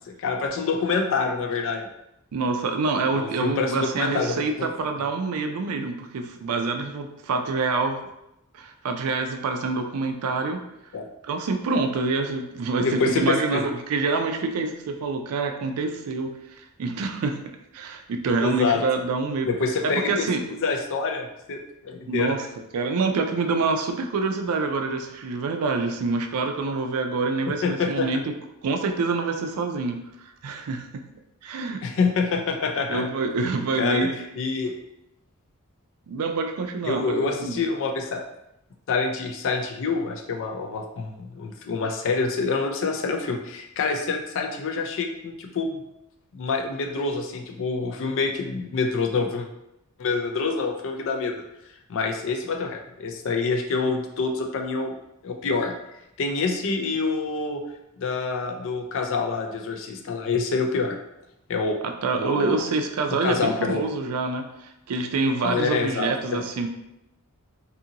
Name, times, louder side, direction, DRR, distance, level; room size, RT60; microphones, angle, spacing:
voice 1, 0.1-1.9 3.1-4.7 10.9-11.0 12.8-13.7 18.4-18.8 19.5-20.1 20.6-22.3 27.6-28.1 31.8-33.0 33.8-34.1 34.4-34.7 36.8-38.2 38.9-45.8 46.3-49.5 50.0-51.4 51.9-54.9 55.2-55.7 56.2-57.6 58.0-61.0 61.5-61.8 62.1-62.6 63.1-63.9 65.4-66.4, left 4 dB, 60° left, 4 dB, 0.4 m, -26 dB
voice 2, 2.3-8.0 8.5-10.7 11.2-17.4 17.7-19.5 19.8-20.5 22.1-22.5 22.7-28.3 28.6-31.1 31.4-31.9 32.9-34.2 36.1-37.6 61.8-66.7, right 3 dB, 75° right, 5 dB, 0.4 m, -26 dB
2.7 x 2.5 x 2.7 m, 0.86 s
head